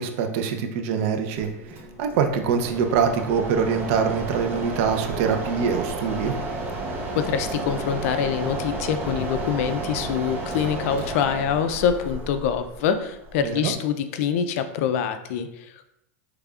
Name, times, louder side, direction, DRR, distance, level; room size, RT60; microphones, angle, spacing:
voice 1, 0.0-6.4 13.4-13.7, right 6 dB, 55° right, 5 dB, 0.6 m, -24 dB
Mechanisms, 1.3-13.7, right 2 dB, 25° right, 0.7 m, -32 dB
voice 2, 7.2-15.9, left 8 dB, 60° left, 10 dB, 0.4 m, -25 dB
5.0 x 3.3 x 2.4 m, 0.82 s
supercardioid pair, 135°, 9 cm